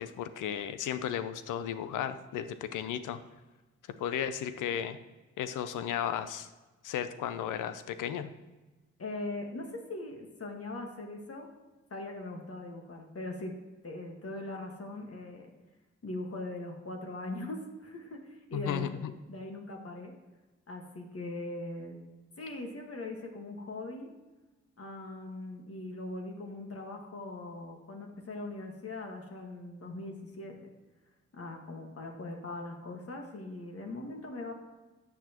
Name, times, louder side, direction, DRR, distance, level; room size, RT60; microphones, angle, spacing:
voice 1, 0.0-3.2 4.0-5.0 5.4-6.5 6.8-8.3 18.5-19.1, left 9 dB, 80° left, 11 dB, 0.6 m, -34 dB
voice 2, 9.0-11.5 11.9-13.5 13.8-15.5 16.0-19.0 19.3-20.1 20.7-22.0 22.4-24.1 24.8-30.7 31.3-34.5, left 2 dB, 50° left, 2 dB, 1.6 m, -40 dB
13.0 x 7.0 x 2.9 m, 1.2 s
supercardioid pair, 40°, 30 cm